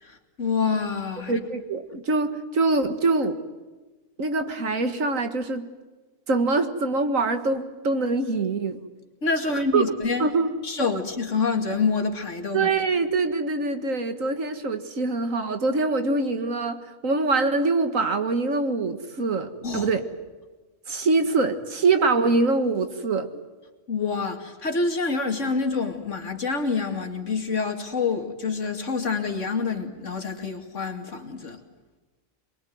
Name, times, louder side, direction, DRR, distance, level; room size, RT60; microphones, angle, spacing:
voice 1, 0.0-1.4 9.2-10.3 10.6-12.7 19.6-19.9 23.9-31.6, left 4 dB, 60° left, 4 dB, 2.7 m, -27 dB
voice 2, 1.3-3.4 4.2-5.7 6.3-8.8 9.5-9.8 10.2-10.5 12.5-20.0 20.9-23.3, right 3 dB, 70° right, 8 dB, 2.1 m, -24 dB
24.5 x 22.5 x 9.4 m, 1.3 s
omnidirectional pair, 1.4 m